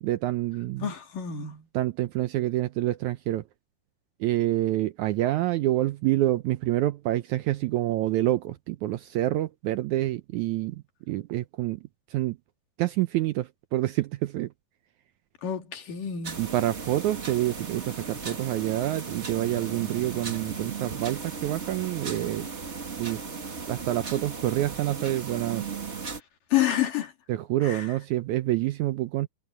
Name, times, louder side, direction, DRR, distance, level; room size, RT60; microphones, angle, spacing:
voice 1, 0.0-0.9 1.7-3.4 4.2-10.8 11.1-11.8 12.1-12.4 12.8-14.5 16.4-22.5 23.0-23.2 23.7-25.6 27.3-29.3, right 15 dB, 85° right, 1.7 m, -27 dB
voice 2, 0.8-1.6 15.4-16.4 26.5-27.1 27.6-27.9, left 11 dB, 65° left, 4.3 m, -28 dB
sound 1, 16.2-26.2, right 5 dB, 35° right, 1.1 m, -36 dB
omnidirectional pair, 4.1 m